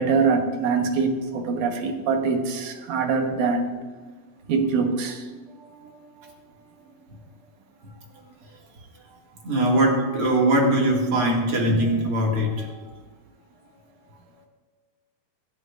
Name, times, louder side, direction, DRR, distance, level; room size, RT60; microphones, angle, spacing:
voice 1, 0.0-3.7 4.5-5.2, right 5 dB, 85° right, 4 dB, 2.7 m, -23 dB
voice 2, 5.5-6.3 9.4-12.9, right 1 dB, 50° right, -1 dB, 2.8 m, -22 dB
25.5 x 10.5 x 2.5 m, 1.4 s
omnidirectional pair, 3.3 m